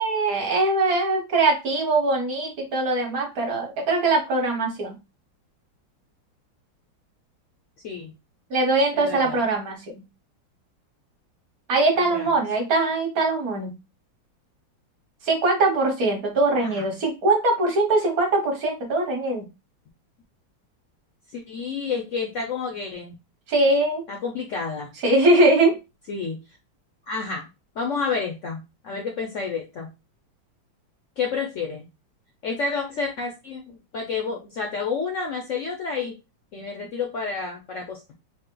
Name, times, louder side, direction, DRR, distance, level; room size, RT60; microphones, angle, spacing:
voice 1, 0.0-4.9 8.5-9.8 11.7-13.7 15.2-19.5 23.5-24.0 25.0-25.7, right 2 dB, 55° right, 2 dB, 1.5 m, -21 dB
voice 2, 8.9-9.4 11.9-12.3 16.6-16.8 21.3-23.1 24.1-24.9 26.1-26.4 27.1-27.5 27.8-29.9 31.2-31.9 32.4-36.2 36.5-38.1, left 5 dB, 75° left, 2 dB, 0.7 m, -30 dB
4.1 x 2.1 x 3.7 m, 0.25 s
omnidirectional pair, 2.0 m